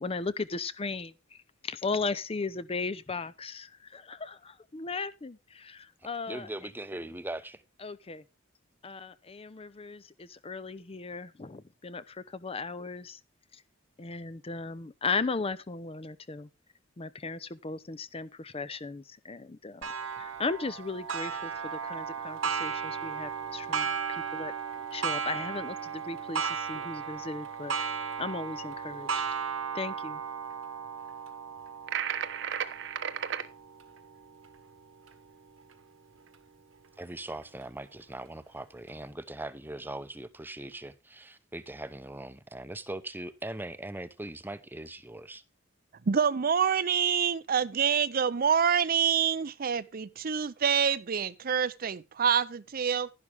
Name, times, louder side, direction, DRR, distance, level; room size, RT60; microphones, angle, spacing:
voice 1, 0.0-1.4 1.6-6.5 7.8-8.2 8.8-13.2 13.5-13.6 14.0-16.5 17.0-19.9 20.2-24.5 24.9-27.9 28.2-29.2 29.7-30.2, left 4 dB, 30° left, 0.6 m, -36 dB
voice 2, 6.3-7.6 37.0-45.4, right 1 dB, 10° right, 0.8 m, -40 dB
Clock, 19.8-35.1 35.7-35.8 36.3-36.4 37.4-37.5, right 6 dB, 80° right, 1.5 m, -35 dB
sound 1, 31.9-33.5, right 8 dB, 65° right, 1.0 m, -33 dB
voice 3, 46.1-53.1, right 7 dB, 45° right, 0.5 m, -26 dB
11.5 x 11.0 x 3.4 m
head